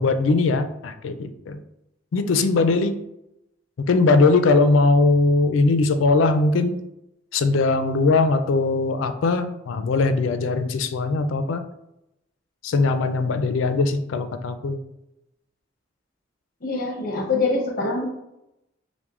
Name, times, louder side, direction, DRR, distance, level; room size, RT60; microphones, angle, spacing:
voice 1, 0.0-1.6 2.1-2.9 3.9-6.8 7.3-11.6 12.6-14.8, left 3 dB, 85° left, 9 dB, 0.4 m, -20 dB
voice 2, 16.6-18.1, left 3 dB, 50° left, 2 dB, 0.8 m, -24 dB
5.9 x 2.1 x 2.4 m, 0.86 s
head